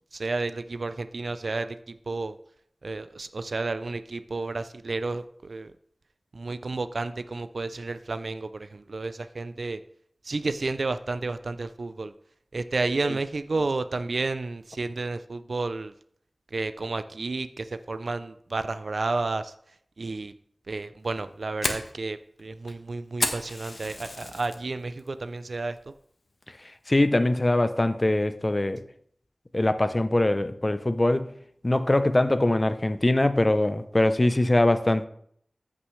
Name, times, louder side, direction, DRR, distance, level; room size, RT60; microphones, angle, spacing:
voice 1, 0.1-1.8 2.1-2.3 2.8-5.7 6.3-9.8 10.3-12.1 12.5-15.9 16.5-19.5 20.0-20.3 20.7-25.8, right 3 dB, 75° right, 0.4 m, -31 dB
Fire, 21.0-24.6 25.0-25.4 25.8-25.9 26.4-26.8, left 2 dB, 60° left, 1.1 m, -32 dB
voice 2, 26.9-28.8 29.5-31.3 31.6-35.1, left 1 dB, 30° left, 0.6 m, -22 dB
13.5 x 6.1 x 3.2 m
wide cardioid pair, 75°, 0 cm